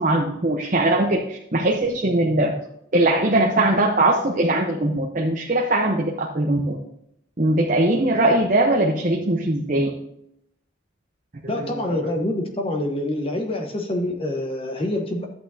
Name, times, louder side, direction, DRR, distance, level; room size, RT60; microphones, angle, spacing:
voice 1, 0.0-2.5 2.9-6.8 7.4-9.9 11.5-12.0, right 1 dB, 40° right, 0 dB, 0.9 m, -21 dB
voice 2, 11.5-15.3, left 1 dB, 30° left, 3 dB, 1.1 m, -26 dB
12.5 x 8.4 x 2.8 m, 0.78 s
head